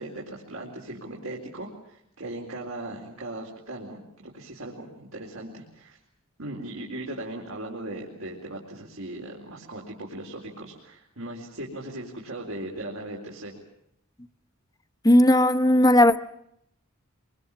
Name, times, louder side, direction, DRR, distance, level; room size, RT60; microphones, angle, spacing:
voice 1, 0.0-6.0 6.4-13.6, right 1 dB, 75° right, -2 dB, 4.1 m, -38 dB
voice 2, 15.0-16.2, left 1 dB, 15° left, 10 dB, 0.9 m, -17 dB
25.5 x 24.0 x 7.3 m, 0.78 s
head